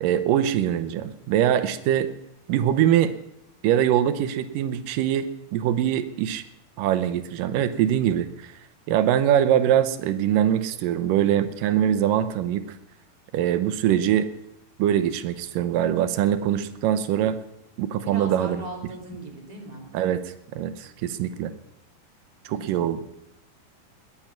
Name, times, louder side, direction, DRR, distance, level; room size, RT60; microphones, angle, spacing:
voice 1, 0.0-2.1 2.5-3.1 3.6-5.3 5.5-6.4 6.8-8.5 8.9-12.6 13.3-14.3 14.8-17.4 17.8-18.6 19.9-20.2 20.5-21.5 22.5-23.0, right 10 dB, 90° right, 12 dB, 2.5 m, -23 dB
voice 2, 18.0-19.9 22.5-22.6 22.9-23.0, right 2 dB, 15° right, 1 dB, 2.2 m, -38 dB
21.0 x 8.7 x 5.9 m, 0.79 s
omnidirectional pair, 3.8 m